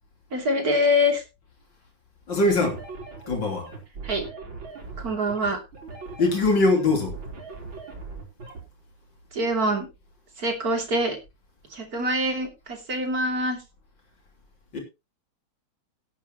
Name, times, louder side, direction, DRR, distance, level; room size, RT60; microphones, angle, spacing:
voice 1, 0.3-1.2 4.0-4.2 5.0-5.6 9.3-9.9 10.4-11.2 11.7-13.6, left 1 dB, 45° right, 3.3 m, -24 dB
voice 2, 2.3-2.8 3.3-3.7 6.2-7.2 14.7-14.8, left 2 dB, 60° left, 3.9 m, -22 dB
sound 1, 2.6-8.6, right 4 dB, 70° right, 4.2 m, -39 dB
18.0 x 8.4 x 3.0 m
omnidirectional pair, 2.3 m